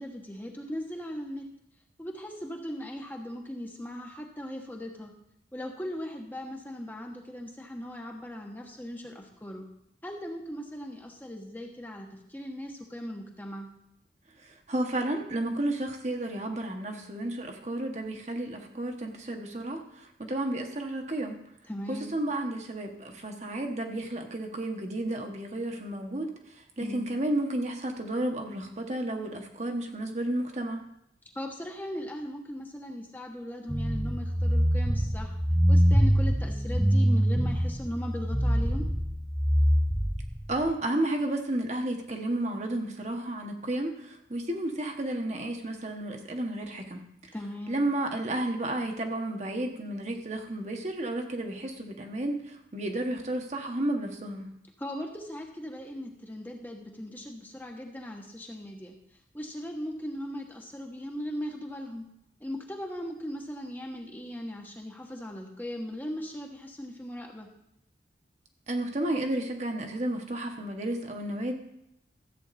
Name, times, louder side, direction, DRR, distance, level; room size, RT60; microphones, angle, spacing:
voice 1, 0.0-1.4 2.0-5.1 5.5-9.6 10.0-13.7 21.7-22.1 26.8-27.1 31.3-35.4 35.7-38.8 47.3-47.8 54.8-58.9 59.3-62.0 62.4-67.5, equal, 10° left, 1 dB, 1.1 m, -38 dB
voice 2, 14.4-21.4 21.9-26.3 26.8-30.8 40.5-47.0 47.7-54.5 68.7-71.5, right 1 dB, 40° right, 3 dB, 1.2 m, -32 dB
sound 1, 33.7-40.6, equal, 5° right, 0.5 m, -24 dB
14.0 x 8.1 x 4.2 m, 0.79 s
head